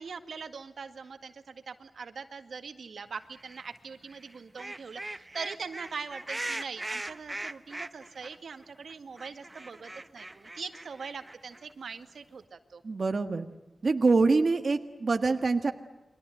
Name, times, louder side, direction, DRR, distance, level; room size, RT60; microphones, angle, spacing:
voice 1, 0.0-12.8, right 5 dB, 80° right, 8 dB, 1.9 m, -42 dB
sound 1, 3.4-3.7 4.1-8.4 8.6-8.7 8.9-11.7, right 2 dB, 20° right, 1.1 m, -40 dB
voice 2, 12.8-13.5 13.8-15.7, right 3 dB, 50° right, 6 dB, 1.5 m, -25 dB
29.5 x 23.5 x 7.9 m, 1.0 s
wide cardioid pair, 135°, 0 cm